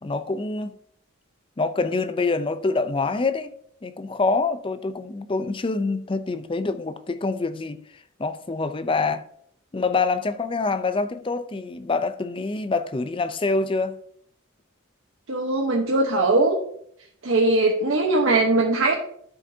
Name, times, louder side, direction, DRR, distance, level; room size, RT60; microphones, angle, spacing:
voice 1, 0.0-0.7 1.6-3.5 3.8-7.8 8.2-9.2 9.7-14.0, left 3 dB, 25° left, 0.4 m, -25 dB
voice 2, 15.3-16.6 17.2-19.0, right 2 dB, 70° right, 1.0 m, -20 dB
12.0 x 5.2 x 2.7 m
head